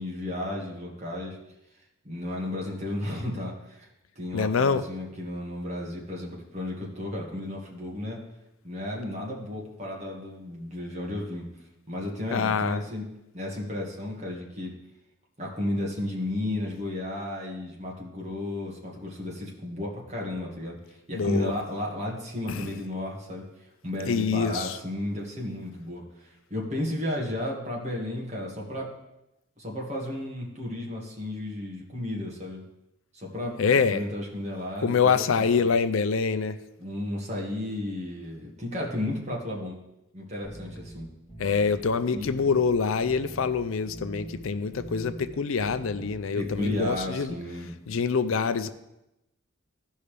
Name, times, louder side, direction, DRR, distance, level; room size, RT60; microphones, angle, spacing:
voice 1, 0.0-1.4 2.0-3.9 4.1-8.2 8.6-11.4 11.9-13.0 13.3-14.7 15.4-23.4 23.8-28.9 29.6-32.6 33.1-33.6 33.9-35.7 36.8-39.8 40.1-41.1 42.1-42.3 46.3-47.7, left 1 dB, 35° right, -2 dB, 1.8 m, -33 dB
voice 2, 4.3-4.8 12.3-12.8 21.1-21.5 22.5-22.7 24.1-24.8 33.6-34.0 34.8-36.6 41.4-47.3 47.9-48.7, left 5 dB, 75° left, 11 dB, 0.5 m, -25 dB
sound 1, 40.4-47.3, right 1 dB, 25° left, 1.7 m, -44 dB
15.0 x 5.5 x 3.4 m, 0.90 s
head